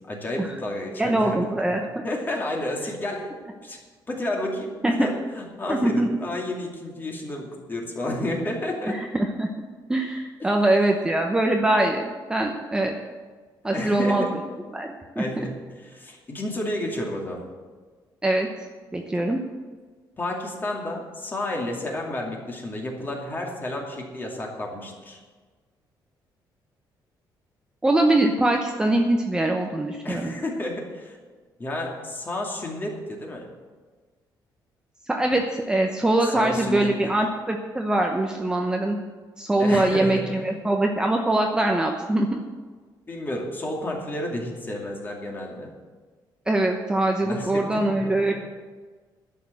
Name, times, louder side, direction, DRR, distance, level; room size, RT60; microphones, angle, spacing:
voice 1, 0.1-1.4 2.0-3.3 3.6-3.8 4.1-9.0 10.4-10.5 13.7-14.4 15.2-17.4 20.2-25.2 30.0-31.2 31.6-33.5 36.3-37.1 39.6-40.4 43.1-45.7 47.2-48.3, left 1 dB, 25° left, 0 dB, 2.5 m, -31 dB
voice 2, 1.0-2.0 4.8-5.1 5.7-6.1 8.9-9.5 9.9-12.9 13.6-14.3 14.7-15.2 18.2-18.5 18.9-19.4 27.8-30.3 35.1-39.0 39.4-42.4 46.5-48.3, right 1 dB, 10° right, 2 dB, 0.8 m, -23 dB
11.5 x 6.7 x 9.4 m, 1.4 s
cardioid pair, 145°, 8 cm